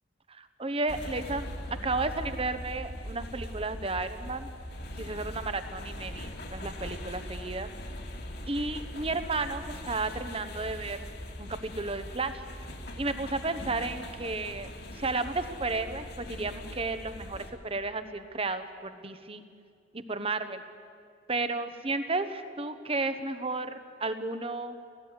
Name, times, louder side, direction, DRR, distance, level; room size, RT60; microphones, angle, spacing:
voice 1, 0.3-1.5 1.8-4.5 5.0-7.7 8.5-11.0 11.4-12.4 13.0-14.7 14.9-19.4 19.9-20.6 21.3-24.8, right 3 dB, 30° right, 10 dB, 1.1 m, -33 dB
sound 1, 0.9-17.5, left 1 dB, 55° left, 2.4 m, -41 dB
18.0 x 16.0 x 9.8 m, 2.2 s
head